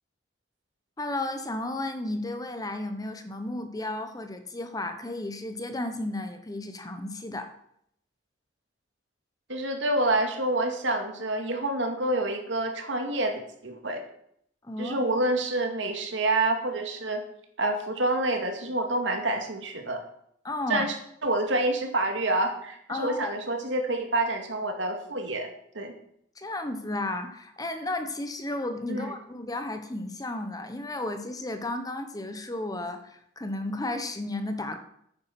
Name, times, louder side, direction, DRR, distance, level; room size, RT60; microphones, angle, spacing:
voice 1, 1.0-7.5 14.6-15.0 20.4-20.9 22.9-23.3 26.4-34.8, left 2 dB, 20° left, 7 dB, 1.1 m, -33 dB
voice 2, 9.5-14.0 14.8-17.2 17.6-20.0 20.7-20.9 21.2-25.5 25.7-25.9 28.9-29.1, right 2 dB, 85° right, 4 dB, 2.2 m, -27 dB
9.5 x 9.5 x 6.0 m, 0.70 s
head